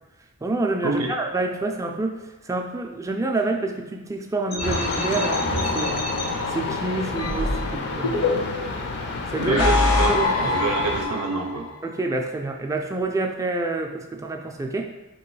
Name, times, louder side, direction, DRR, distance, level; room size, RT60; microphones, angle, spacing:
voice 1, 0.4-6.1 6.5-8.3 9.3-9.6 10.1-10.5 11.8-14.9, right 2 dB, 15° right, 3 dB, 0.3 m, -28 dB
sound 1, 4.5-6.2 7.2-8.7 9.3-11.5, left 2 dB, 85° left, 1.2 m, -24 dB
sound 2, 4.6-11.1, left 3 dB, 50° left, 0.5 m, -29 dB
voice 2, 9.4-11.7, right 3 dB, 90° right, 1 dB, 0.5 m, -26 dB
3.1 x 2.9 x 4.6 m, 1.1 s
head